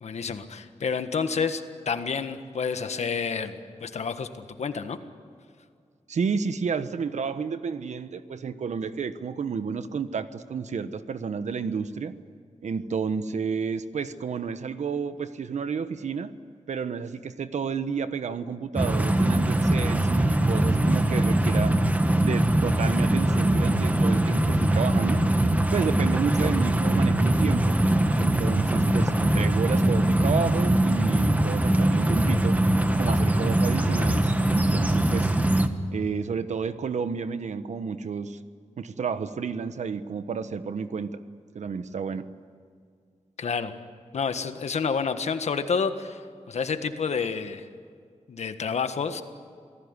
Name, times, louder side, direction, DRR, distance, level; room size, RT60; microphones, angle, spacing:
voice 1, 0.0-4.3 4.6-5.0 43.4-43.7 44.1-46.2 46.5-47.7 48.3-49.2, left 5 dB, 70° left, 8 dB, 1.6 m, -29 dB
voice 2, 6.1-12.1 12.6-16.3 16.7-21.8 22.2-25.2 25.7-27.8 28.2-32.6 33.0-35.3 35.9-38.4 38.8-41.2 41.5-42.3, right 6 dB, 85° right, 11 dB, 1.2 m, -31 dB
sound 1, 18.8-35.7, right 1 dB, 15° right, 1.3 m, -22 dB
28.0 x 19.0 x 9.8 m, 2.2 s
wide cardioid pair, 155°, 12 cm